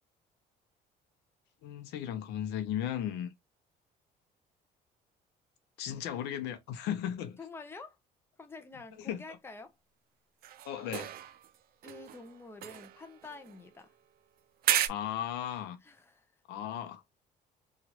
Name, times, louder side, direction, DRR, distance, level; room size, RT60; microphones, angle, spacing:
voice 1, 1.6-3.3 5.8-7.4 9.1-9.2 10.6-11.1 14.9-15.8 16.5-17.0, left 10 dB, 90° left, 0.7 m, -36 dB
voice 2, 7.4-8.0 8.4-9.8 11.8-14.0 15.8-16.4, left 3 dB, 15° left, 0.6 m, -48 dB
sound 1, 10.4-11.6 11.8-13.9 14.6-14.9, right 12 dB, 60° right, 0.4 m, -34 dB
3.0 x 2.4 x 2.8 m
cardioid pair, 110°, 17 cm